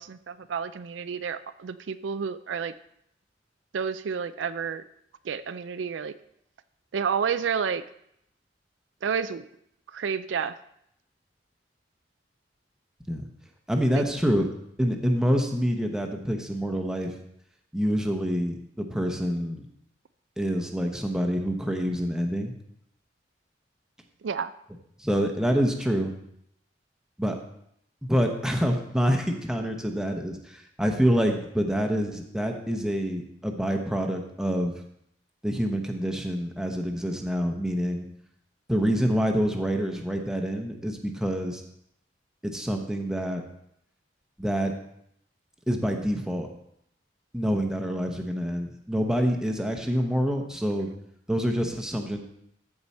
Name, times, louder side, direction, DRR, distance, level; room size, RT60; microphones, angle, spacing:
voice 1, 0.0-2.7 3.7-4.8 5.2-6.1 6.9-7.8 9.0-9.5 9.9-10.6 13.9-14.0 24.2-24.5, right 6 dB, 85° right, 13 dB, 0.4 m, -30 dB
voice 2, 13.7-14.5 14.8-17.2 17.7-19.7 20.4-22.5 25.0-26.1 27.2-27.4 28.0-34.7 35.4-38.1 38.7-41.6 42.4-43.4 44.4-44.7 45.7-46.5 47.3-50.9 51.3-52.2, equal, 5° right, 3 dB, 0.9 m, -26 dB
14.0 x 4.8 x 4.2 m, 0.75 s
head